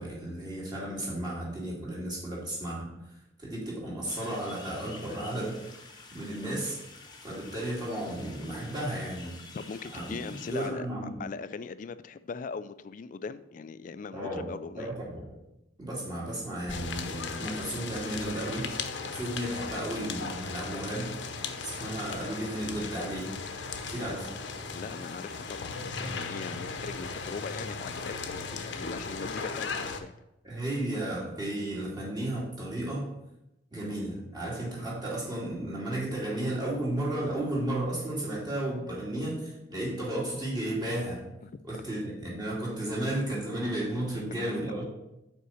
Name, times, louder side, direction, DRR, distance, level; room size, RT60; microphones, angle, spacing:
voice 1, 0.0-2.9 3.4-5.8 6.1-6.8 7.2-9.3 9.9-10.2 10.5-11.2 14.1-14.4 14.7-15.3 15.8-18.7 19.1-21.2 21.6-23.4 23.8-24.3 30.4-33.1 33.7-41.3 41.6-44.9, right 1 dB, 20° right, -6 dB, 2.5 m, -33 dB
sound 1, 4.1-10.7, left 3 dB, 25° left, 0.9 m, -49 dB
voice 2, 9.5-10.9 11.2-14.9 24.7-30.1 41.4-41.5 41.8-41.9 44.1-44.3, left 5 dB, 45° left, 13 dB, 0.3 m, -40 dB
sound 2, 16.7-30.0, left 4 dB, 75° left, 0.7 m, -37 dB
5.6 x 4.5 x 6.3 m, 0.88 s
head